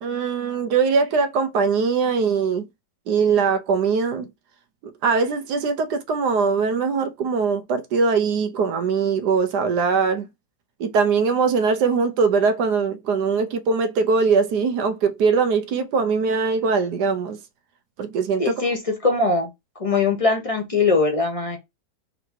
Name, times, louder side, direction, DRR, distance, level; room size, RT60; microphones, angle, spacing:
voice 1, 0.0-2.6 3.1-4.3 5.0-10.3 10.8-17.4 18.0-18.6, right 5 dB, 70° right, 1.3 m, -21 dB
voice 2, 18.4-19.5 19.8-21.6, left 3 dB, 25° left, 0.8 m, -21 dB
3.8 x 2.9 x 4.5 m
omnidirectional pair, 1.9 m